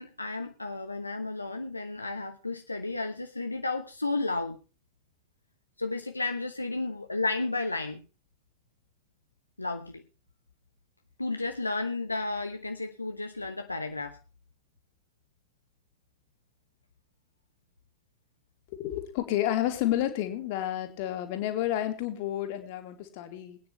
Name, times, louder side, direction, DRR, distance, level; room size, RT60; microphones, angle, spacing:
voice 1, 0.0-4.6 5.8-8.0 9.6-10.0 11.2-14.2, left 3 dB, 85° left, 5 dB, 1.0 m, -32 dB
voice 2, 18.7-23.6, left 13 dB, 50° left, 6 dB, 2.8 m, -30 dB
22.5 x 9.6 x 3.2 m, 0.33 s
figure-of-eight pair, 90°, 0 cm